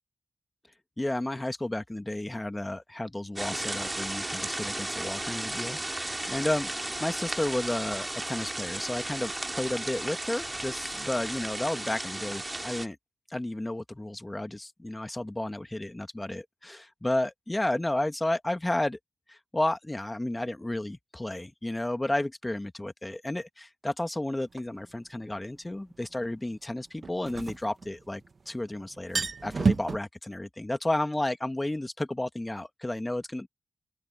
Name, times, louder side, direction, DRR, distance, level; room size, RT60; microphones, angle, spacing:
voice 1, 1.0-13.0 13.3-19.0 19.3-33.5, left 1 dB, 20° left, 1.7 m, -32 dB
sound 1, 3.4-12.9, right 2 dB, 25° right, 2.6 m, -34 dB
sound 2, 24.6-24.7 27.0-28.3 28.6-28.7 29.0-30.0, right 4 dB, 60° right, 0.8 m, -28 dB
open air
cardioid pair, 60°, 0 cm